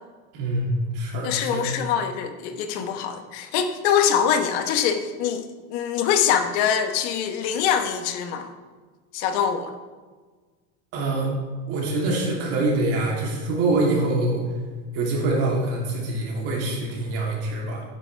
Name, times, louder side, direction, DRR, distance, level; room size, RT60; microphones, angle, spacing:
voice 1, 0.3-1.7 2.8-2.9 10.9-11.3 11.7-14.4 14.9-17.8, right 2 dB, 45° right, -2 dB, 2.9 m, -25 dB
voice 2, 1.2-8.5 9.1-9.7, left 8 dB, 70° left, 7 dB, 1.1 m, -24 dB
12.0 x 10.0 x 3.3 m, 1.4 s
cardioid pair, 175°, 34 cm